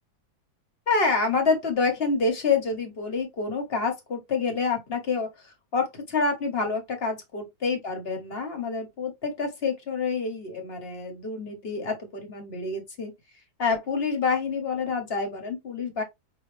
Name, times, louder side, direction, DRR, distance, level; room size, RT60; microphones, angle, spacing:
voice 1, 0.9-13.1 13.6-16.0, left 4 dB, 40° left, 1.1 m, -27 dB
5.5 x 2.4 x 3.2 m
omnidirectional pair, 2.1 m